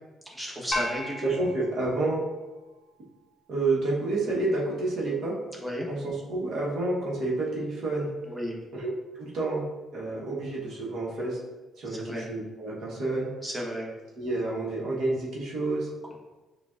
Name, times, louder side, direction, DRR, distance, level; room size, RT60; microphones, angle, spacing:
voice 1, 0.3-1.2 5.6-5.9 8.2-8.6 11.9-12.2 13.4-13.9, equal, 5° right, -3 dB, 1.0 m, -33 dB
sound 1, 0.7-3.2, left 1 dB, 25° left, 0.9 m, -36 dB
voice 2, 1.2-2.3 3.5-5.4 5.8-8.1 8.8-9.7 9.9-11.4 11.8-13.3 14.2-15.9, right 2 dB, 70° right, -4 dB, 1.2 m, -29 dB
6.8 x 2.5 x 2.4 m, 1.1 s
cardioid pair, 90°, 0 cm